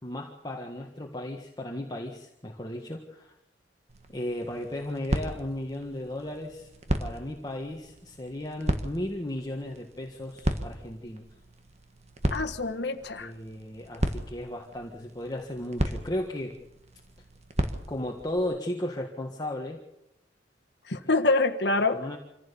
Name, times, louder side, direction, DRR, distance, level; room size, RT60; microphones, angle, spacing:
voice 1, 0.0-3.3 4.1-6.7 7.0-11.2 13.2-16.6 17.9-19.8 21.0-21.1 21.9-22.2, left 1 dB, 20° left, 0 dB, 1.6 m, -35 dB
sound 1, 3.9-18.4, right 1 dB, 35° right, 1.6 m, -35 dB
voice 2, 12.3-13.3 20.9-22.0, left 3 dB, 65° left, 7 dB, 1.6 m, -26 dB
26.0 x 15.5 x 7.1 m, 0.84 s
head